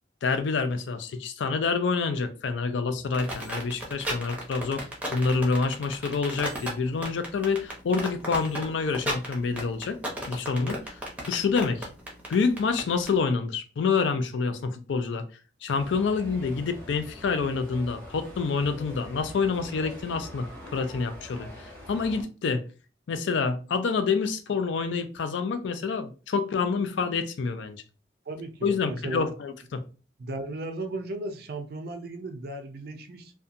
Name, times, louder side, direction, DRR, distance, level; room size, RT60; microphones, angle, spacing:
voice 1, 0.2-4.8 5.1-10.0 10.3-10.8 11.2-11.9 12.3-15.2 15.6-21.5 21.9-22.6 23.1-27.8 28.6-29.8, left 4 dB, 75° left, 0.4 m, -27 dB
sound 1, 3.1-13.1, right 1 dB, 10° right, 0.6 m, -34 dB
sound 2, 15.8-22.2, left 1 dB, 10° left, 0.9 m, -44 dB
voice 2, 28.3-29.3 30.2-33.3, right 2 dB, 55° right, 0.4 m, -36 dB
2.7 x 2.2 x 2.5 m
head